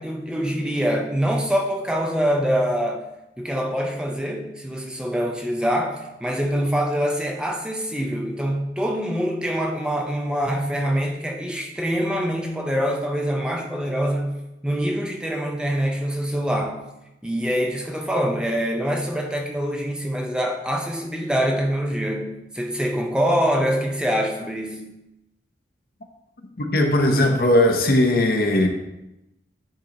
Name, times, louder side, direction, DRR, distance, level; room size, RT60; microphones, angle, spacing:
voice 1, 0.0-3.0 3.4-16.8 17.2-24.9, equal, 5° right, 0.4 m, -25 dB
voice 2, 26.6-28.7, left 1 dB, 55° left, 0.8 m, -18 dB
10.0 x 3.8 x 2.9 m
head